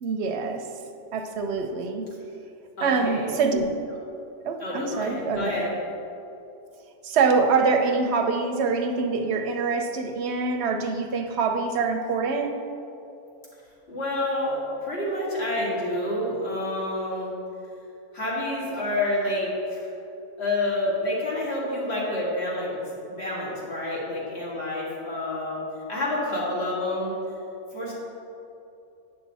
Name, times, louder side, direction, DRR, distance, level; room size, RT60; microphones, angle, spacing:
voice 1, 0.0-0.7 1.1-2.0 2.8-3.7 4.5-5.6 7.0-12.5, right 4 dB, 60° right, 5 dB, 0.9 m, -25 dB
voice 2, 2.8-3.3 4.6-5.7 13.9-17.3 18.1-19.9 20.4-22.8 23.1-27.1 27.7-27.9, left 1 dB, 50° left, -6 dB, 2.2 m, -28 dB
9.2 x 5.9 x 4.1 m, 2.8 s
omnidirectional pair, 1.4 m